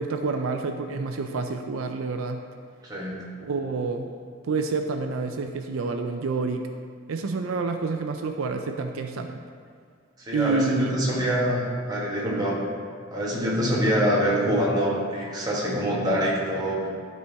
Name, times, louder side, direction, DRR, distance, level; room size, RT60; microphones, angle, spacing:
voice 1, 0.0-2.4 3.4-4.1 4.4-6.7 7.1-9.4 10.3-11.0, right 4 dB, 80° right, 5 dB, 0.4 m, -28 dB
voice 2, 2.8-3.2 10.3-12.6 13.1-16.9, equal, 20° right, -6 dB, 1.5 m, -25 dB
12.5 x 4.3 x 3.5 m, 2.1 s
head